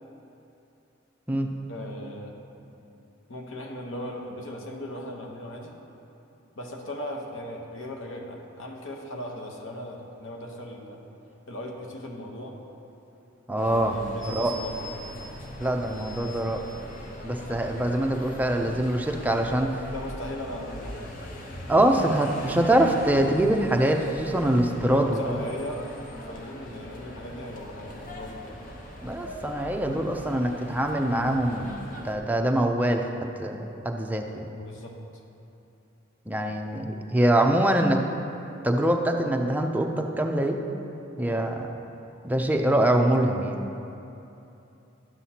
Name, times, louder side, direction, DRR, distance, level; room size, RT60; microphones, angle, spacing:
voice 1, 1.7-2.3 3.3-5.7 6.6-11.0 11.5-12.6 13.6-15.1 19.5-21.0 24.8-28.6 34.6-34.9, left 1 dB, 85° left, 1 dB, 0.9 m, -38 dB
voice 2, 13.5-14.0 14.3-14.5 15.6-16.6 17.2-19.7 21.7-25.2 29.0-31.7 32.0-34.5 36.3-38.0 38.6-40.6 41.2-41.7 42.2-43.6, right 1 dB, 10° right, 2 dB, 0.4 m, -24 dB
sound 1, 13.6-32.2, equal, 45° left, 0.8 m, -41 dB
10.5 x 7.4 x 2.8 m, 2.8 s
head